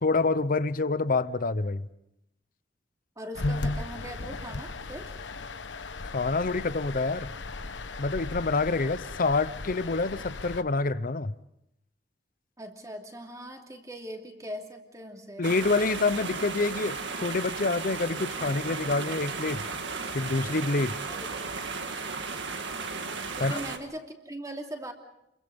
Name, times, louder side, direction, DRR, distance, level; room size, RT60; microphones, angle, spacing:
voice 1, 0.0-1.9 6.1-7.3 8.0-11.3 15.4-19.7 20.1-21.0 23.4-23.6, left 3 dB, 50° left, 15 dB, 0.8 m, -27 dB
voice 2, 3.2-5.1 12.6-15.5 21.1-21.3 23.3-24.9, right 1 dB, 20° right, 2 dB, 2.8 m, -40 dB
sound 1, 3.3-10.6, left 2 dB, 80° left, 1.0 m, -36 dB
sound 2, 15.4-23.8, right 4 dB, 75° right, 1.9 m, -35 dB
29.0 x 22.0 x 5.3 m, 0.82 s
head